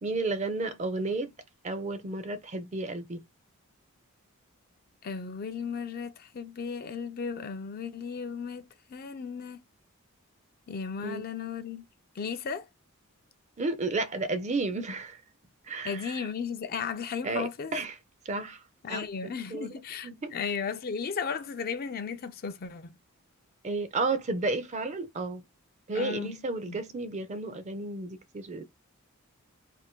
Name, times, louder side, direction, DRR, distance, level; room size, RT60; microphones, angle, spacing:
voice 1, 0.0-1.3 1.6-3.2 11.0-11.3 13.6-15.2 15.7-16.3 17.2-18.0 18.3-18.6 18.9-19.1 19.5-20.4 23.6-25.4 25.9-28.6, right 3 dB, 30° right, 0.4 m, -32 dB
voice 2, 5.0-9.6 10.7-11.8 12.2-12.7 15.8-17.7 18.8-23.0 25.9-26.4 26.7-26.8, left 6 dB, 40° left, 0.4 m, -35 dB
2.5 x 2.5 x 3.6 m
head